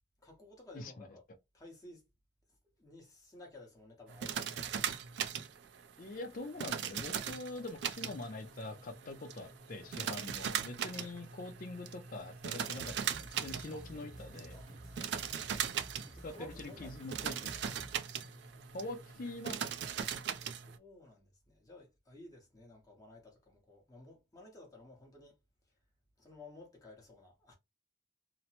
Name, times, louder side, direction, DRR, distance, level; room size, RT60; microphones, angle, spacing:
voice 1, 0.2-1.2 1.5-2.0 2.8-4.6 10.9-11.1 13.7-14.7 16.1-17.4 18.2-18.7 20.5-25.4 26.2-27.5, left 2 dB, 20° left, 0.9 m, -55 dB
voice 2, 0.7-1.1 6.0-14.6 16.2-17.5 18.7-19.6, left 2 dB, 45° left, 0.4 m, -44 dB
sound 1, 4.1-20.8, right 8 dB, 60° right, 0.3 m, -40 dB
sound 2, 7.4-19.4, equal, 40° right, 0.8 m, -55 dB
2.9 x 2.0 x 2.8 m
head